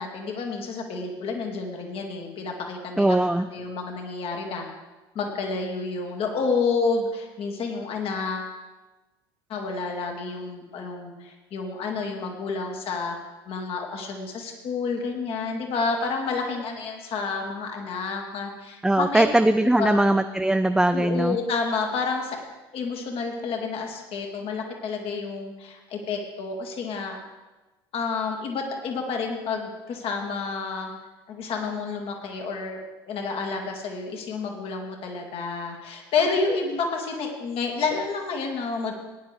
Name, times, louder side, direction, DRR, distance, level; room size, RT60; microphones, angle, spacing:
voice 1, 0.0-3.2 3.5-4.7 5.1-8.6 9.5-13.2 13.5-19.3 19.8-20.0 20.9-22.4 22.7-27.2 27.9-30.9 31.3-38.9, left 4 dB, 45° left, 2 dB, 2.2 m, -29 dB
voice 2, 3.0-3.5 18.8-21.4, right 1 dB, 5° right, 9 dB, 0.4 m, -20 dB
17.0 x 10.5 x 3.5 m, 1.1 s
figure-of-eight pair, 65°, 13 cm